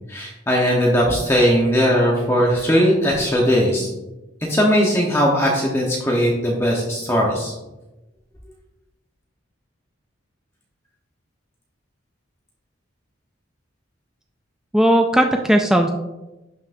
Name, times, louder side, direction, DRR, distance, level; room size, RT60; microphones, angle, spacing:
voice 1, 0.1-3.9 4.5-7.5, equal, 15° left, -3 dB, 1.0 m, -19 dB
voice 2, 14.7-15.9, right 1 dB, 5° right, 3 dB, 0.3 m, -16 dB
11.5 x 5.8 x 2.6 m, 1.0 s
head